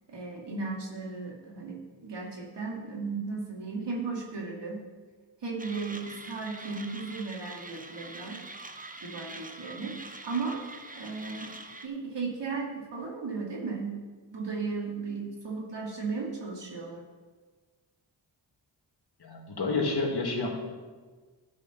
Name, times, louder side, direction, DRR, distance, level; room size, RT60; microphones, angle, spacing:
voice 1, 0.1-1.8 2.0-4.8 5.4-8.4 9.0-9.9 10.2-10.6 11.0-11.5 11.8-14.0 14.3-17.0, right 4 dB, 65° right, -1 dB, 2.4 m, -35 dB
Mechanisms, 5.6-11.9, right 2 dB, 20° right, 0.9 m, -44 dB
voice 2, 19.2-20.5, left 3 dB, 55° left, 0 dB, 2.1 m, -29 dB
12.0 x 5.0 x 5.8 m, 1.4 s
cardioid pair, 50°, 46 cm